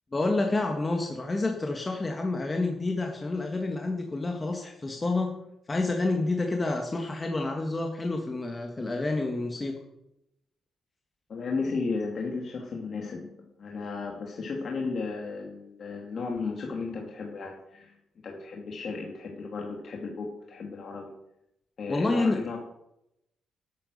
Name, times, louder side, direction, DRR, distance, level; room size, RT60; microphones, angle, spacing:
voice 1, 0.1-9.8 21.9-22.4, left 2 dB, 20° left, 2 dB, 1.8 m, -29 dB
voice 2, 11.3-18.0 18.2-21.1 21.8-22.6, left 4 dB, 45° left, 1 dB, 2.5 m, -34 dB
13.0 x 9.7 x 6.5 m, 0.82 s
cardioid pair, 135°, 0 cm